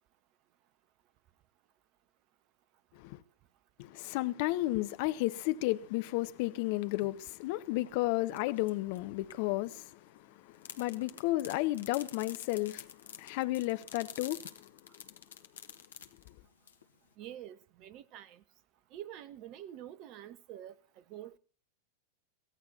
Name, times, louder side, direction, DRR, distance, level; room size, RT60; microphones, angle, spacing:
voice 1, 3.8-14.7, left 18 dB, 45° left, 0.7 m, -33 dB
sound 1, 5.6-7.2 7.6-9.8 10.5-17.1, left 8 dB, 65° left, 1.2 m, -49 dB
voice 2, 17.2-18.4 18.9-21.4, right 11 dB, 40° right, 0.7 m, -47 dB
23.0 x 16.5 x 2.8 m
figure-of-eight pair, 90°, 0 cm